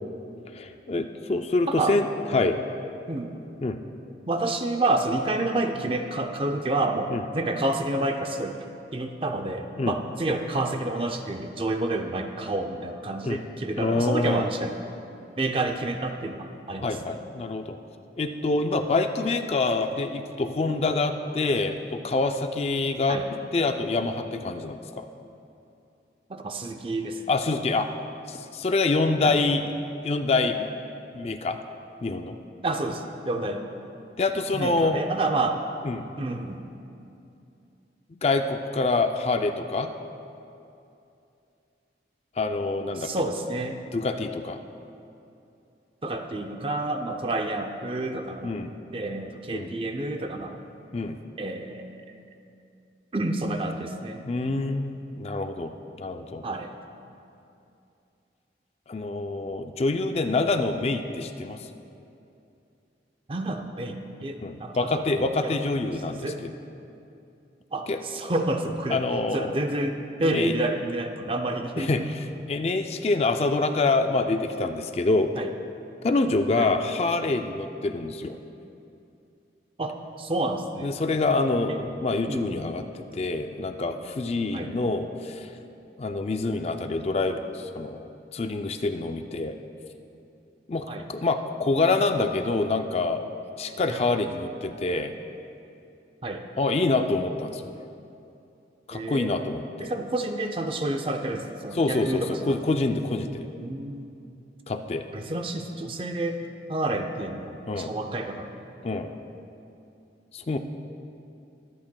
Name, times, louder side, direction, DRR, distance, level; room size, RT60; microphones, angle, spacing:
voice 1, 0.5-2.1 2.3-2.6 3.6-3.8 7.1-7.2 9.8-10.0 13.2-13.4 13.8-14.5 16.8-17.8 18.2-23.2 23.5-25.1 27.3-27.9 28.3-29.6 30.0-30.7 31.1-31.6 32.0-32.3 34.2-35.0 35.9-36.0 38.1-39.9 42.4-43.1 43.9-44.6 48.4-48.7 49.5-49.7 50.9-51.2 54.2-55.7 56.0-56.4 58.9-61.6 64.4-66.5 67.9-68.0 68.9-69.6 70.2-70.5 71.8-72.0 72.5-75.3 76.0-78.4 80.8-85.5 86.0-89.5 90.7-93.2 93.6-95.2 96.6-97.7 98.9-99.9 101.8-103.4 104.7-105.0 107.7-107.9 108.8-109.1 110.3-110.6, left 3 dB, 35° left, 7 dB, 0.4 m, -26 dB
voice 2, 1.7-2.0 3.1-3.4 4.3-8.7 8.9-14.8 15.4-17.2 23.1-23.3 26.3-27.2 29.2-29.4 32.6-33.6 34.5-35.6 36.2-36.7 42.9-43.8 46.0-50.6 51.4-52.0 53.1-54.2 56.4-56.7 63.3-65.6 66.2-66.4 67.7-69.0 69.3-72.1 75.4-75.5 76.6-76.7 79.8-80.9 81.7-81.8 82.3-82.7 84.5-84.7 90.9-91.0 93.9-94.0 96.2-96.4 98.9-99.3 99.8-102.6 103.6-104.1 105.1-106.4 106.7-108.6, right 2 dB, 30° right, 5 dB, 0.5 m, -29 dB
23.0 x 8.7 x 2.2 m, 2.7 s
head